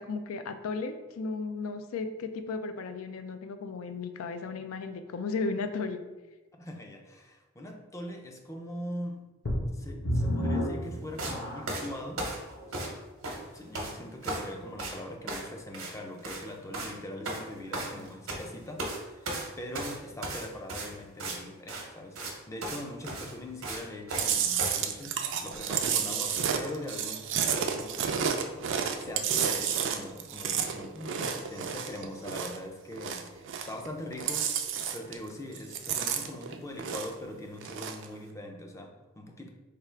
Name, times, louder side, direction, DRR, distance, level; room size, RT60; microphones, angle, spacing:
voice 1, 0.0-6.0, left 4 dB, 80° left, 8 dB, 0.4 m, -35 dB
voice 2, 6.5-9.2 9.7-12.3 12.7-12.9 13.2-22.2 22.5-28.4 29.0-34.6 34.9-39.5, left 1 dB, 15° left, 2 dB, 0.4 m, -42 dB
sound 1, 9.4-11.9 12.5-12.6 13.2-13.3, equal, 55° left, 0.8 m, -31 dB
sound 2, 11.2-11.4 11.7-13.0 13.2-13.9 14.2-14.5 14.8-15.0 15.3-15.5 15.7-15.9 16.2-16.4 16.7-16.9 17.3-18.4 18.8-19.0 19.3-21.4 21.7-21.8 22.2-22.3 22.6-22.8 23.0-24.3 24.6-24.8, right 2 dB, 80° right, 0.8 m, -35 dB
Chewing mastication, 24.2-32.6 32.9-33.9 34.1-35.3 35.6-37.2 37.6-38.1, right 7 dB, 60° right, 0.4 m, -31 dB
3.4 x 2.4 x 4.3 m, 1.1 s
head